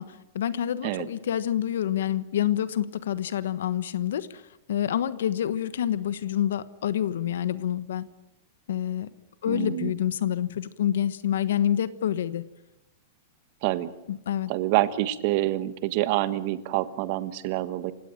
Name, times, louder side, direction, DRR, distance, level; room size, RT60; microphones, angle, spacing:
voice 1, 0.0-4.4 4.7-8.1 8.7-9.1 9.4-12.4 14.1-14.5, left 10 dB, 80° left, 14 dB, 1.2 m, -27 dB
voice 2, 9.5-9.9 13.6-13.9 14.5-17.9, right 15 dB, 40° right, 13 dB, 1.3 m, -27 dB
28.0 x 17.0 x 9.1 m, 0.91 s
supercardioid pair, 170°, 0 cm